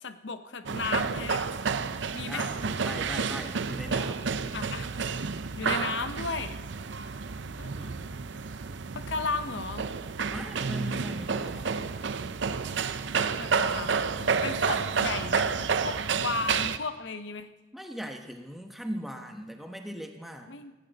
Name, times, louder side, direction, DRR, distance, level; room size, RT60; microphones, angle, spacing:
voice 1, 0.0-1.5 2.1-2.5 4.5-4.9 5.6-6.6 7.6-7.9 8.9-9.9 13.0-17.5 20.5-20.7, left 4 dB, 75° left, 11 dB, 0.7 m, -35 dB
sound 1, 0.7-16.8, right 5 dB, 75° right, 0.6 m, -30 dB
voice 2, 2.3-4.3 10.3-11.8 17.7-20.6, equal, ahead, 4 dB, 1.0 m, -39 dB
17.0 x 15.0 x 4.1 m, 1.2 s
head